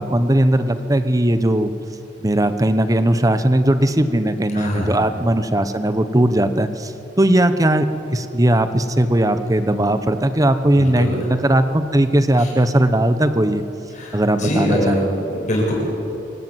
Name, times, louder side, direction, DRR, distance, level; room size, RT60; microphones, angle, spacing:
voice 1, 0.0-1.7 2.2-13.6 14.1-15.0, right 1 dB, 20° right, 10 dB, 1.0 m, -18 dB
voice 2, 4.5-5.0 10.8-11.2 12.4-12.5 13.9-15.7, equal, 45° left, -2 dB, 7.2 m, -23 dB
26.5 x 16.5 x 8.1 m, 2.9 s
head